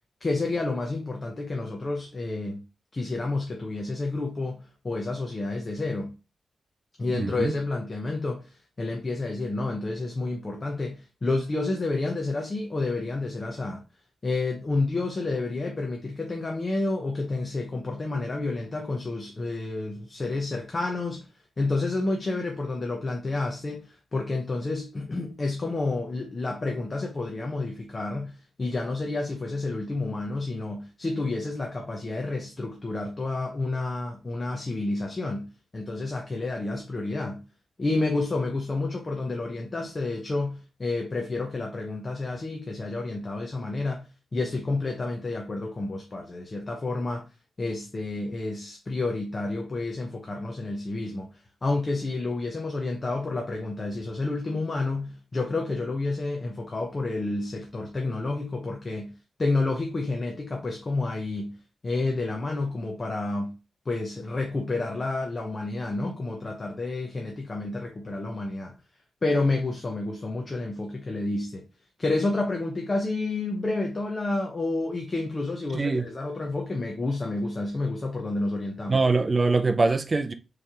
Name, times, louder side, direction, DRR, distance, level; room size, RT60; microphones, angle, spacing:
voice 1, 0.2-2.6 2.9-6.1 7.0-13.8 14.2-21.3 21.6-35.5 35.7-37.4 37.8-44.0 44.3-47.2 47.6-59.1 59.4-61.6 61.8-63.5 63.9-68.8 69.2-71.6 72.0-79.0, left 2 dB, 30° left, 0.7 m, -30 dB
voice 2, 7.1-7.5 75.7-76.1 78.9-80.3, right 3 dB, 30° right, 0.5 m, -23 dB
4.4 x 3.3 x 3.6 m
wide cardioid pair, 135°, 0 cm